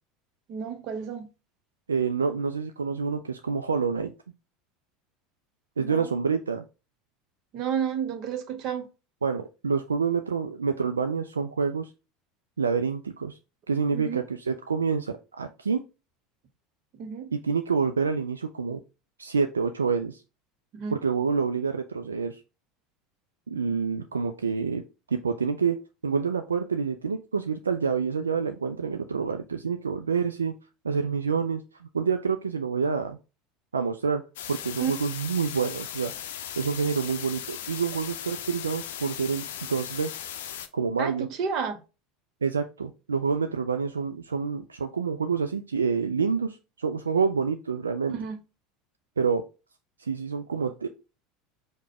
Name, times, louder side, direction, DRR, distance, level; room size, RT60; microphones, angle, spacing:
voice 1, 0.5-1.3 5.8-6.1 7.5-8.9 13.9-14.2 17.0-17.3 20.7-21.0 34.8-34.9 41.0-41.8 48.1-48.4, right 7 dB, 50° right, 0.8 m, -31 dB
voice 2, 1.9-4.1 5.8-6.6 9.2-11.9 12.6-13.4 13.7-15.8 17.3-18.8 19.2-20.2 20.9-22.4 23.5-24.8 25.1-25.8 26.0-30.5 30.8-33.2 33.7-34.2 34.5-36.1 36.6-40.1 40.7-41.3 42.4-48.1 49.2-49.4 50.0-50.9, right 5 dB, 80° right, 0.3 m, -27 dB
sound 1, 34.4-40.7, left 10 dB, 65° left, 0.5 m, -37 dB
4.9 x 2.2 x 4.7 m
figure-of-eight pair, 75°, 0 cm